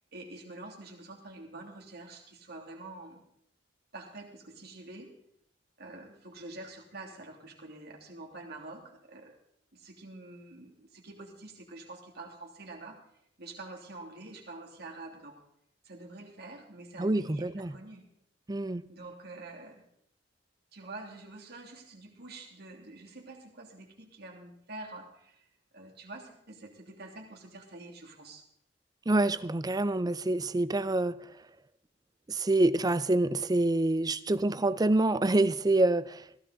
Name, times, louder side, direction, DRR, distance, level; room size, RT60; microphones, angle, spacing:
voice 1, 0.1-3.3 3.9-5.1 5.8-9.4 9.7-13.0 13.4-15.4 15.8-18.1 18.9-19.8 20.7-25.4 25.7-28.4, right 2 dB, 60° right, 3.0 m, -47 dB
voice 2, 17.0-17.8 18.5-18.8 29.1-31.3 32.3-36.4, right 2 dB, 20° right, 0.5 m, -27 dB
16.0 x 15.5 x 4.0 m
head